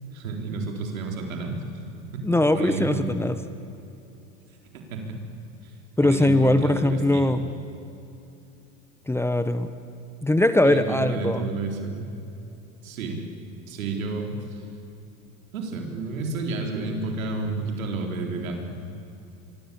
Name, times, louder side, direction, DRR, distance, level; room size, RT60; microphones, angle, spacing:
voice 1, 0.1-1.6 2.5-3.1 4.9-5.0 5.6-5.7 6.0-7.3 10.6-12.1 12.8-13.3 13.7-14.6 15.5-18.8, right 3 dB, 85° right, 2 dB, 4.2 m, -31 dB
voice 2, 2.2-3.4 6.0-7.4 9.1-9.7 10.2-11.5, left 1 dB, 5° left, 11 dB, 1.0 m, -21 dB
24.0 x 24.0 x 8.6 m, 2.8 s
hypercardioid pair, 95°, 40 cm